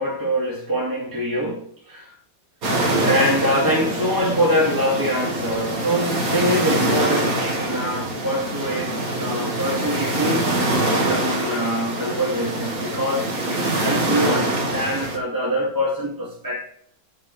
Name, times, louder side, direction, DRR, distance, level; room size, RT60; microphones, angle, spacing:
voice 1, 0.0-2.1 2.7-16.7, equal, 10° right, 2.3 m, -24 dB
sound 1, 2.6-15.2, right 1 dB, 50° right, 2.1 m, -24 dB
8.7 x 5.5 x 4.8 m
omnidirectional pair, 2.0 m